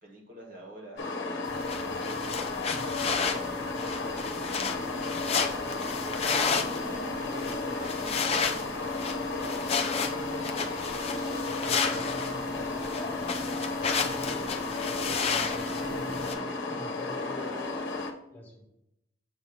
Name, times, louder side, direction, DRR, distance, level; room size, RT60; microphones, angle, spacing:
voice 1, 0.0-6.4 6.8-8.4 9.0-10.8 11.4-14.6 15.0-17.6, equal, 40° right, 0 dB, 1.5 m, -48 dB
sound 1, 1.0-18.1, left 3 dB, 55° left, 0.8 m, -33 dB
sound 2, 1.5-16.4, left 5 dB, 30° left, 0.4 m, -32 dB
sound 3, 6.2-16.4, equal, 25° right, 1.0 m, -45 dB
voice 2, 15.1-16.0 16.7-18.0 18.3-18.6, left 1 dB, 10° left, -1 dB, 1.3 m, -45 dB
7.3 x 2.9 x 5.5 m, 0.84 s
head